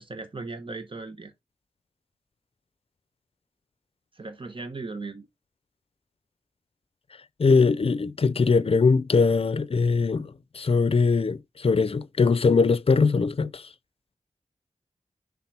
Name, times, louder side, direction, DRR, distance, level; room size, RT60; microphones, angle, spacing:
voice 1, 0.0-1.3 4.1-5.3, right 3 dB, 40° right, 1.0 m, -37 dB
voice 2, 7.4-13.6, left 4 dB, 50° left, 0.5 m, -21 dB
5.8 x 3.6 x 5.9 m
cardioid pair, 55°, 13 cm